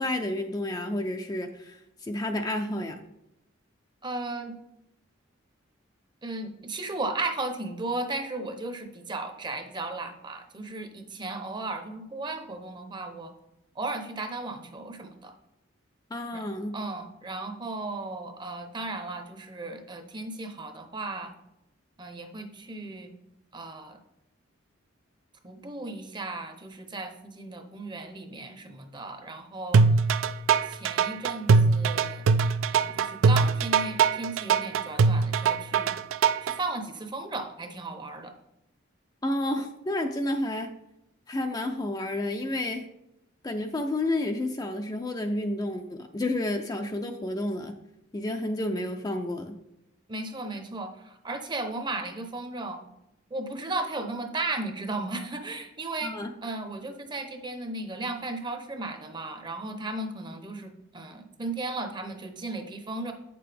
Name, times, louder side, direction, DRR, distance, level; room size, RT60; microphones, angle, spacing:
voice 1, 0.0-3.0 16.1-16.8 39.2-40.7 41.3-42.8 43.4-47.8 48.1-49.6 56.0-56.3, left 1 dB, 20° left, 4 dB, 0.4 m, -30 dB
voice 2, 4.0-4.6 6.2-13.3 13.8-15.3 16.3-16.4 16.7-21.3 22.0-23.1 23.5-24.0 25.4-29.9 30.7-32.2 32.7-35.9 36.4-38.3 50.1-52.8 53.3-56.1 56.4-63.1, right 2 dB, 20° right, 6 dB, 0.7 m, -35 dB
sound 1, 29.7-36.5, right 5 dB, 75° right, 0.4 m, -21 dB
8.1 x 6.8 x 3.4 m, 0.86 s
head